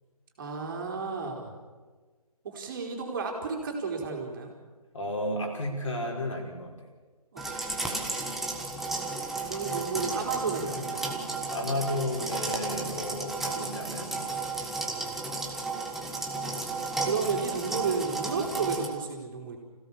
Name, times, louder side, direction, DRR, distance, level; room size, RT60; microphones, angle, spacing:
voice 1, 0.4-1.5 2.4-4.5 7.3-7.4 9.4-11.1 14.9-15.3 17.0-19.6, right 5 dB, 35° right, 1 dB, 3.9 m, -32 dB
voice 2, 4.9-6.7 11.5-14.1, left 1 dB, 55° left, 0 dB, 5.5 m, -32 dB
sound 1, 7.4-18.9, right 3 dB, ahead, 1.2 m, -33 dB
27.0 x 16.5 x 7.1 m, 1.4 s
figure-of-eight pair, 150°, 20 cm